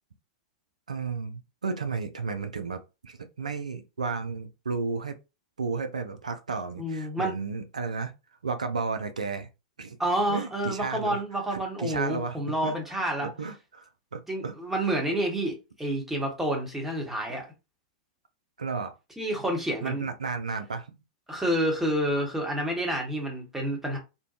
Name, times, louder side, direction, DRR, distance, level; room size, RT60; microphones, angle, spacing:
voice 1, 0.9-5.2 5.6-8.1 8.4-9.5 9.8-10.0 10.3-11.2 11.5-12.7 13.2-14.5 14.8-14.9 18.6-18.9 19.8-20.9, right 4 dB, 85° right, 0.4 m, -33 dB
voice 2, 6.8-7.3 10.0-13.3 14.3-17.5 19.2-20.1 21.3-24.0, right 1 dB, 5° right, 1.0 m, -29 dB
2.6 x 2.2 x 2.4 m
hypercardioid pair, 100°, 4 cm